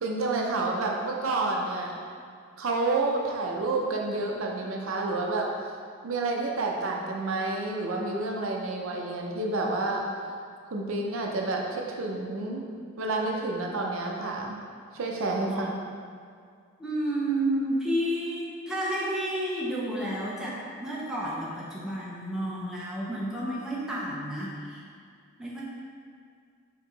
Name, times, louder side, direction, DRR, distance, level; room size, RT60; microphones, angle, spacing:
voice 1, 0.0-2.0 2.6-5.5 6.0-10.0 10.7-12.6 13.0-14.6 14.9-15.7, right 3 dB, 75° right, 0 dB, 0.6 m, -29 dB
voice 2, 16.8-24.8 25.4-25.6, right 1 dB, 5° right, -7 dB, 0.6 m, -31 dB
4.5 x 3.0 x 3.8 m, 2.2 s
head